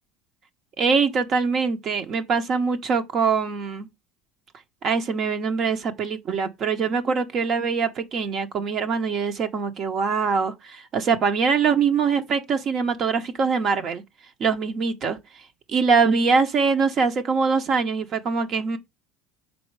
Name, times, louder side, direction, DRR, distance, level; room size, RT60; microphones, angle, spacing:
voice 1, 0.8-3.9 4.8-14.0 14.4-15.2 15.7-18.8, right 5 dB, 40° right, 0.9 m, -23 dB
5.4 x 3.9 x 4.6 m
supercardioid pair, 120°, 0 cm